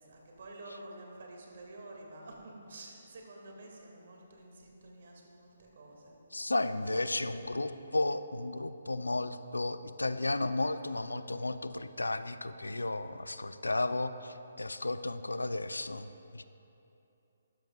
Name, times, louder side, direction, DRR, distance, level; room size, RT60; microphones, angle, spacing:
voice 1, 0.0-6.5 7.3-7.4, right 2 dB, 55° right, 0 dB, 2.0 m, -50 dB
voice 2, 6.3-16.4, left 2 dB, 90° left, 12 dB, 0.4 m, -33 dB
12.5 x 12.0 x 2.3 m, 2.9 s
figure-of-eight pair, 140°, 0 cm